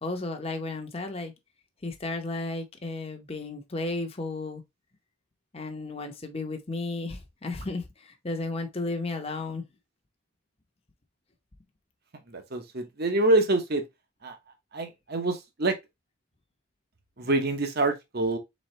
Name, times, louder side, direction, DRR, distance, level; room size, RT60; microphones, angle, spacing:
voice 1, 0.0-1.3 1.8-4.6 5.5-9.6, left 2 dB, 30° left, 0.8 m, -33 dB
voice 2, 12.3-13.8 14.2-14.4 14.7-15.8 17.2-18.4, right 2 dB, 50° right, 0.9 m, -26 dB
4.2 x 3.8 x 3.2 m
head